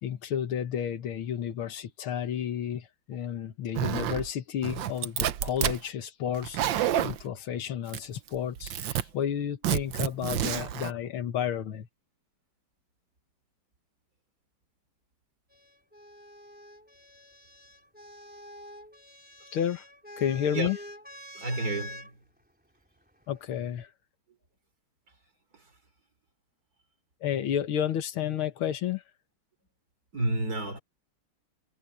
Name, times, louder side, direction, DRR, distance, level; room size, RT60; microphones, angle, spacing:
voice 1, 0.0-11.9 19.5-19.8 20.2-20.8 23.3-23.9 27.2-29.0, left 9 dB, 85° left, 2.1 m, -31 dB
Zipper (clothing), 3.7-4.3 4.6-5.8 6.3-7.2 7.9-8.3 8.6-9.0 9.6-10.9, right 11 dB, 70° right, 1.5 m, -29 dB
sound 1, 15.5-22.1 23.2-23.8, left 1 dB, 5° right, 3.5 m, -46 dB
voice 2, 21.3-22.2 25.5-25.7 30.1-30.8, right 2 dB, 45° right, 3.8 m, -31 dB
omnidirectional pair, 2.2 m